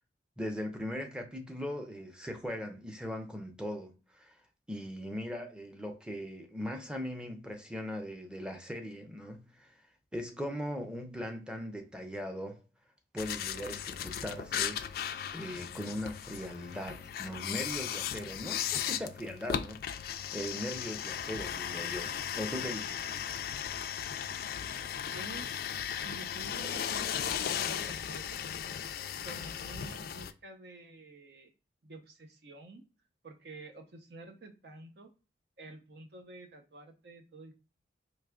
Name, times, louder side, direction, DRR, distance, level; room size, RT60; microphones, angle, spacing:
voice 1, 0.4-4.3 4.7-9.7 10.1-12.6 13.1-19.8 20.3-23.1, equal, 5° right, 0.6 m, -39 dB
sound 1, 13.2-30.3, left 9 dB, 55° left, 0.3 m, -36 dB
voice 2, 25.1-28.4 29.2-31.5 31.8-32.8 33.2-35.1 35.6-37.5, right 3 dB, 65° right, 0.6 m, -50 dB
4.7 x 2.7 x 2.3 m
head